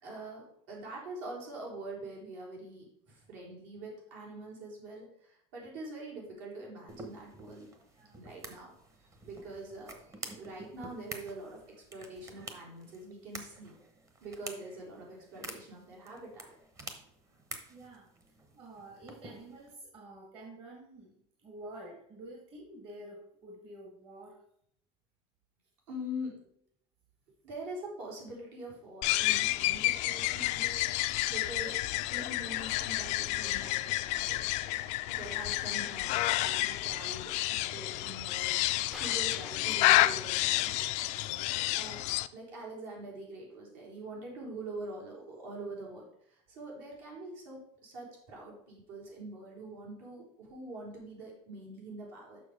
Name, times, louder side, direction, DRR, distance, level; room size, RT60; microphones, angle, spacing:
voice 1, 0.0-7.7 8.1-8.7 9.0-13.8 14.2-16.5 25.9-26.4 27.4-31.8 32.1-34.4 35.2-40.9 41.4-42.0 42.3-52.4, right 1 dB, 70° right, -2 dB, 3.8 m, -44 dB
sound 1, 6.9-19.7, right 2 dB, 20° right, 1.0 m, -49 dB
voice 2, 7.9-8.3 17.7-18.1 18.5-21.2 21.4-24.4 35.0-35.4, right 1 dB, 40° right, 0 dB, 1.6 m, -49 dB
sound 2, 29.0-42.3, left 17 dB, 50° left, 0.4 m, -30 dB
sound 3, 38.9-40.7, left 1 dB, ahead, 0.5 m, -50 dB
6.9 x 6.0 x 4.9 m, 0.69 s
cardioid pair, 155°, 15 cm